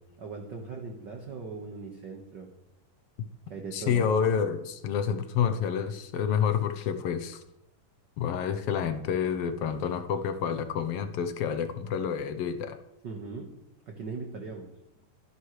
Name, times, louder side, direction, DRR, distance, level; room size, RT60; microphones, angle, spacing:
voice 1, 0.2-2.5 3.5-4.1 13.0-13.5 13.9-14.7, right 4 dB, 45° right, 2 dB, 1.6 m, -39 dB
voice 2, 3.7-7.4 8.2-12.8, left 7 dB, 70° left, 9 dB, 1.4 m, -28 dB
25.0 x 11.0 x 3.3 m, 0.86 s
omnidirectional pair, 3.6 m